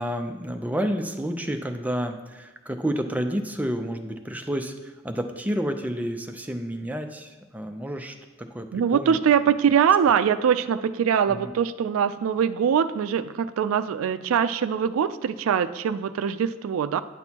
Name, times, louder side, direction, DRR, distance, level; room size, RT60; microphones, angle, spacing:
voice 1, 0.0-8.1 8.5-9.2 11.3-11.5, equal, 10° right, 5 dB, 0.5 m, -30 dB
voice 2, 8.7-17.0, right 7 dB, 80° right, 12 dB, 0.3 m, -23 dB
9.6 x 6.1 x 2.9 m, 1.2 s
head